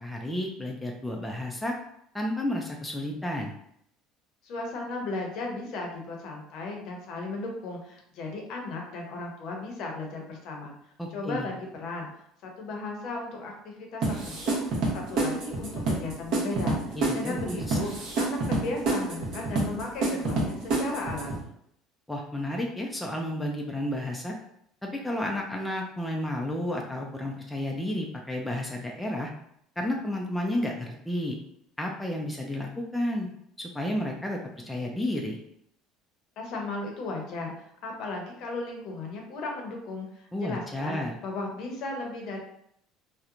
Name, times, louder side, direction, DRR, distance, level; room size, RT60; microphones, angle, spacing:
voice 1, 0.0-1.7 2.1-3.5 11.0-11.5 17.0-17.8 22.1-24.3 24.8-29.3 29.8-31.4 31.8-33.3 33.6-35.4 40.3-41.1, left 1 dB, 5° left, 0 dB, 0.4 m, -31 dB
voice 2, 4.4-10.7 11.1-12.1 12.4-21.5 36.4-42.4, left 2 dB, 60° left, 0 dB, 0.7 m, -36 dB
sound 1, 14.0-21.4, right 2 dB, 55° right, 0.9 m, -28 dB
2.8 x 2.1 x 2.4 m, 0.72 s
supercardioid pair, 115°, 0 cm